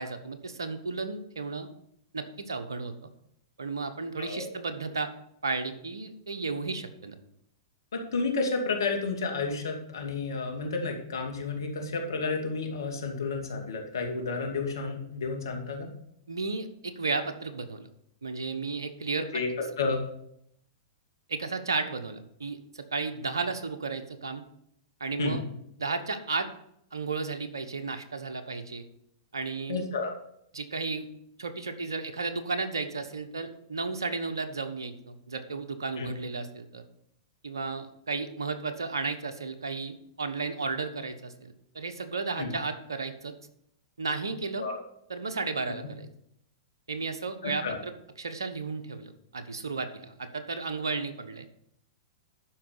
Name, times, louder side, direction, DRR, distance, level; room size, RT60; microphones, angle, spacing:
voice 1, 0.0-1.7 2.1-2.9 3.6-5.1 5.4-7.2 16.3-17.9 18.2-19.4 21.3-24.4 25.0-25.4 25.8-26.5 26.9-28.8 29.3-29.9 30.5-31.1 31.4-36.8 37.4-43.3 44.0-44.7 45.1-46.1 46.9-47.9 48.2-51.5, right 4 dB, 90° right, 8 dB, 1.1 m, -33 dB
voice 2, 4.2-4.5 8.1-15.9 19.3-19.5 19.8-20.0 25.2-25.4 29.7-30.1 36.0-36.1 42.4-42.5 44.6-44.8 47.4-47.8, left 4 dB, 75° left, 3 dB, 2.5 m, -31 dB
12.0 x 4.9 x 6.8 m, 0.75 s
hypercardioid pair, 115°, 2 cm